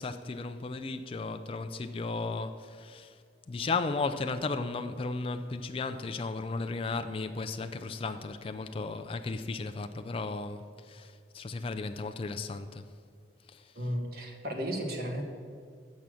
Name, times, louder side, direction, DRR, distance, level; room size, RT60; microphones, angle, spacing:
voice 1, 0.0-3.2 3.5-12.8 13.5-13.7, left 3 dB, 30° left, 0.3 m, -35 dB
voice 2, 13.7-15.2, equal, 55° right, 1.3 m, -34 dB
7.0 x 6.2 x 7.4 m
head